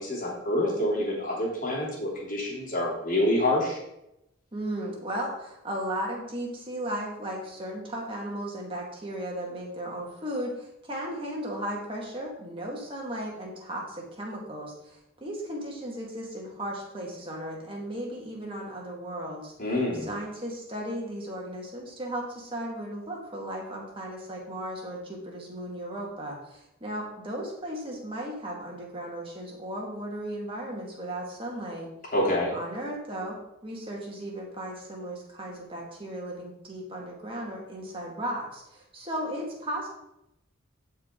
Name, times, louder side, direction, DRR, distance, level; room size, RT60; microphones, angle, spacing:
voice 1, 0.0-3.8 19.6-20.1 32.1-32.5, left 1 dB, 40° left, -5 dB, 3.2 m, -27 dB
voice 2, 4.5-19.5 20.1-31.9 32.5-39.9, right 1 dB, 25° right, -2 dB, 1.9 m, -36 dB
13.5 x 4.8 x 3.8 m, 0.84 s
head